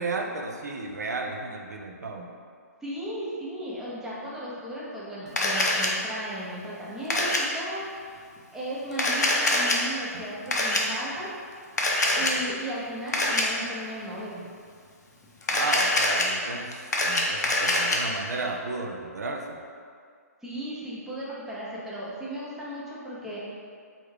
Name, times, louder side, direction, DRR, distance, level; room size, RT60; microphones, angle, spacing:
voice 1, 0.0-2.3 10.1-10.2 12.2-12.4 15.5-19.6, right 3 dB, 85° right, 2 dB, 0.4 m, -33 dB
voice 2, 2.8-8.2 8.5-11.3 12.1-14.4 20.4-23.4, right 1 dB, 5° right, -8 dB, 0.6 m, -36 dB
Camera, 5.4-5.9 7.1-7.4 8.9-9.8 10.5-10.8 11.8-12.3 13.1-13.4 15.4-16.2 16.7-18.0, left 2 dB, 85° left, 0.6 m, -24 dB
3.4 x 2.3 x 3.2 m, 2.2 s
hypercardioid pair, 140°, 9 cm